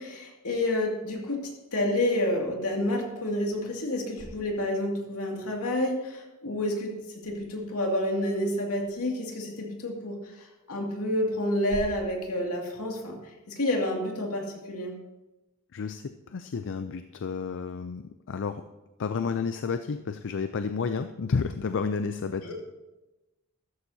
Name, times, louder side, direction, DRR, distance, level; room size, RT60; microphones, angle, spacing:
voice 1, 0.0-6.9 7.2-10.1 10.7-13.2 13.5-14.9 22.4-22.5, left 1 dB, 75° left, 0 dB, 2.4 m, -29 dB
sound 1, 2.3-2.4 2.9-3.1 3.9-5.2 7.0-8.5 8.8-9.5 10.2-10.3 11.0-12.6, equal, ahead, 3.4 m, -47 dB
voice 2, 15.7-18.6 19.0-22.5, left 5 dB, 55° left, 9 dB, 0.4 m, -31 dB
14.5 x 13.0 x 2.8 m, 1.0 s
head